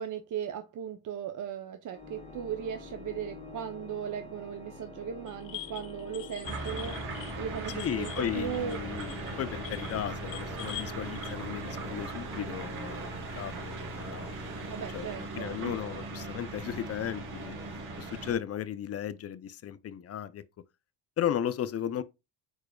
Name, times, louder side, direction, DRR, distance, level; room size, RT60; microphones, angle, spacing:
voice 1, 0.0-8.8 14.7-15.8, right 8 dB, 40° right, 0.6 m, -37 dB
Organ, 1.9-12.8, left 3 dB, 15° left, 1.5 m, -47 dB
sound 1, 5.3-11.3, left 14 dB, 60° left, 0.8 m, -44 dB
sound 2, 6.4-18.3, right 2 dB, 70° right, 2.8 m, -39 dB
voice 2, 7.7-14.6 14.9-17.6 18.0-20.4 21.2-22.0, left 10 dB, 35° left, 0.4 m, -35 dB
4.8 x 4.6 x 2.2 m
supercardioid pair, 70°, 50 cm